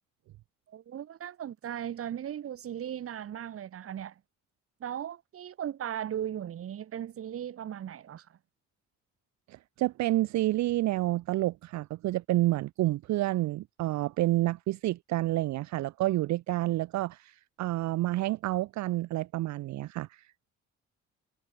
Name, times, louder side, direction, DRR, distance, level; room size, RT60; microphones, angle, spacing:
voice 1, 0.7-4.2 4.8-8.4, right 10 dB, 50° right, 0.9 m, -37 dB
voice 2, 9.5-20.3, right 16 dB, 65° right, 0.5 m, -29 dB
cardioid pair, 90°, 30 cm